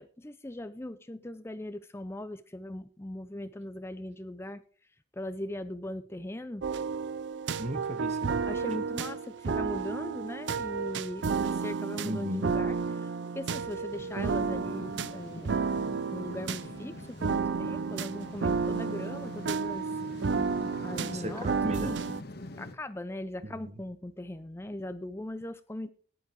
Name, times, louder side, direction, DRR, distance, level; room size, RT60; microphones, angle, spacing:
voice 1, 0.0-4.6 5.1-6.6 8.5-13.1 13.4-15.6 16.1-19.9 20.8-21.5 21.8-22.0 22.6-25.9, left 1 dB, 15° left, 0.5 m, -39 dB
sound 1, 6.6-22.2, right 5 dB, 70° right, 0.5 m, -32 dB
voice 2, 7.6-8.3 12.0-12.5 21.0-22.0 23.4-23.5, right 1 dB, 35° right, 1.2 m, -35 dB
sound 2, 13.9-22.8, left 1 dB, 60° left, 1.3 m, -45 dB
16.5 x 11.0 x 3.7 m
head